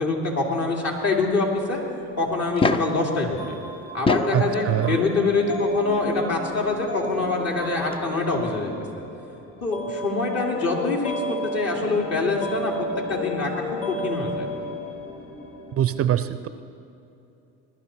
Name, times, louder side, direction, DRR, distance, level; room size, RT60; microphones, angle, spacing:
voice 1, 0.0-1.8 2.2-3.6 3.9-9.0 9.6-13.5 13.9-14.5, left 3 dB, 50° left, -1 dB, 3.0 m, -25 dB
sound 1, 2.4-3.0 3.9-4.4 5.7-5.8 7.6-7.7 7.9-8.0, left 3 dB, 15° left, 0.5 m, -23 dB
sound 2, 3.4-16.0, left 1 dB, 65° left, 3.3 m, -32 dB
voice 2, 4.3-5.0 15.8-16.5, right 11 dB, 40° right, 13 dB, 0.6 m, -23 dB
20.5 x 12.0 x 4.4 m, 2.8 s
supercardioid pair, 90°, 34 cm